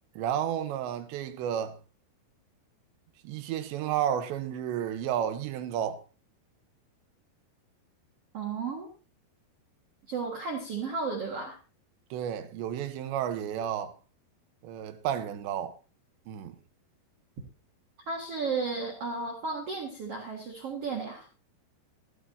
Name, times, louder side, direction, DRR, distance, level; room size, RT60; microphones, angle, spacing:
voice 1, 0.2-1.8 3.2-6.0 12.1-13.9 14.6-15.8 16.3-16.6, right 10 dB, 85° right, 3.2 m, -32 dB
voice 2, 8.3-8.9 10.1-11.6 18.1-21.3, right 4 dB, 50° right, 2.0 m, -33 dB
15.5 x 13.5 x 2.8 m
omnidirectional pair, 5.1 m